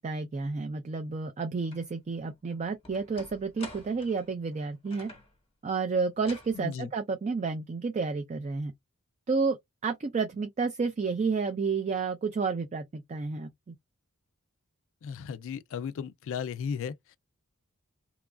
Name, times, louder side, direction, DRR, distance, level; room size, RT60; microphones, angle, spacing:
voice 1, 0.0-5.1 5.6-8.7 9.3-9.6 9.8-13.7, right 4 dB, 30° right, 0.4 m, -31 dB
sound 1, 1.7-1.8 2.3-5.3 6.2-6.6, left 2 dB, 25° left, 1.0 m, -48 dB
voice 2, 6.5-6.9 15.0-17.2, left 6 dB, 60° left, 0.3 m, -35 dB
2.9 x 2.3 x 2.2 m
head